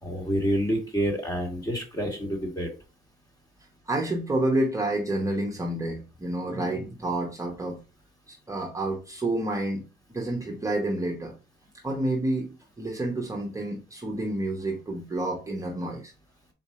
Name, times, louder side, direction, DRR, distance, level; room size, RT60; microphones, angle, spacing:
voice 1, 0.0-2.7, equal, 20° left, 1.7 m, -28 dB
voice 2, 3.9-7.8 8.3-9.9 10.1-11.3 11.8-16.1, right 1 dB, 15° right, 0.9 m, -29 dB
4.1 x 2.6 x 4.7 m
cardioid pair, 90°, 20 cm